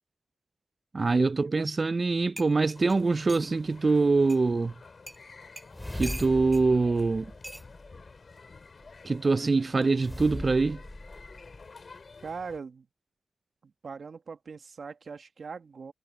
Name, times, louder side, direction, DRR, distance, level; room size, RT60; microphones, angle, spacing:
voice 1, 0.9-4.7 5.9-7.3 9.0-10.8, right 3 dB, 45° right, 0.5 m, -24 dB
sound 1, 2.0-2.1 2.4-3.5 4.3-4.4 5.1-5.2 5.6-6.6 7.4-7.7 8.8-9.1, equal, 5° right, 4.5 m, -43 dB
sound 2, 2.7-12.6, left 4 dB, 55° left, 2.6 m, -51 dB
sound 3, 5.7-8.1 10.0-11.6, left 1 dB, 15° left, 4.3 m, -40 dB
voice 2, 12.2-12.9 13.6-15.9, right 5 dB, 65° right, 1.7 m, -41 dB
supercardioid pair, 40°, 0 cm